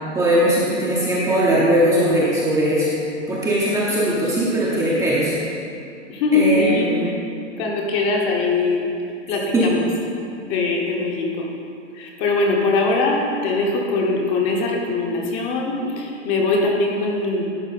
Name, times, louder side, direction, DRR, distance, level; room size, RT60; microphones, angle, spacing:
voice 1, 0.1-3.0 3.3-5.3 6.3-7.1 9.5-9.7, right 1 dB, 10° right, -7 dB, 0.8 m, -19 dB
voice 2, 6.1-7.1 7.6-8.9 9.3-9.9 10.4-11.5 12.0-17.4, left 3 dB, 30° left, 0 dB, 1.0 m, -21 dB
11.0 x 4.3 x 4.1 m, 2.5 s
hypercardioid pair, 140°, 36 cm